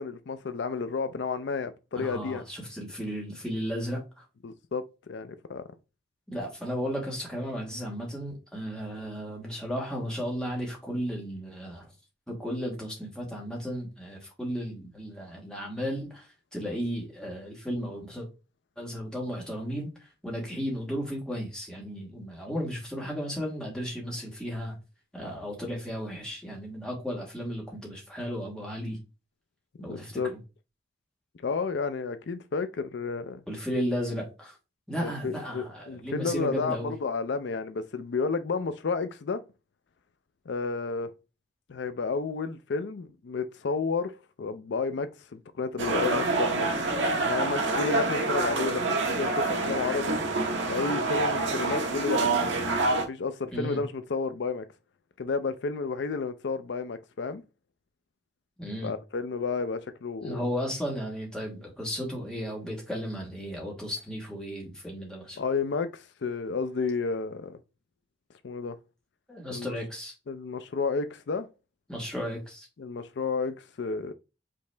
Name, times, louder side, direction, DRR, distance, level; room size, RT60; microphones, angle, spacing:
voice 1, 0.0-2.4 4.4-5.6 29.9-30.3 31.4-33.4 35.0-39.4 40.5-41.1 41.7-44.1 44.4-46.7 47.2-50.2 50.7-52.3 53.1-54.7 55.2-57.4 58.8-60.4 65.4-67.6 68.4-68.8 69.5-69.7 70.3-71.5 72.8-74.1, left 4 dB, 70° left, 0.4 m, -31 dB
voice 2, 1.9-4.2 6.3-11.9 12.3-18.3 18.8-24.7 25.1-29.0 29.8-30.4 33.5-34.6 34.9-36.9 53.5-53.8 58.6-58.9 60.2-65.4 69.3-70.1 71.9-72.7, equal, 5° left, 1.4 m, -34 dB
sound 1, 45.8-53.1, right 3 dB, 80° right, 1.0 m, -27 dB
5.2 x 2.8 x 3.3 m
head